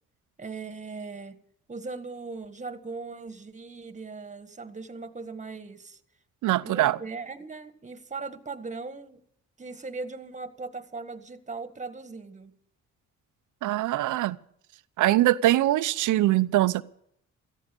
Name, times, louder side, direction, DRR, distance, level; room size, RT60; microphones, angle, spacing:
voice 1, 0.4-1.4 1.7-6.0 6.5-9.2 9.6-12.5, right 4 dB, 25° right, 1.7 m, -39 dB
voice 2, 6.4-7.0 13.6-14.4 15.0-16.8, right 15 dB, 85° right, 0.8 m, -22 dB
17.5 x 14.5 x 5.3 m
cardioid pair, 90°, 30 cm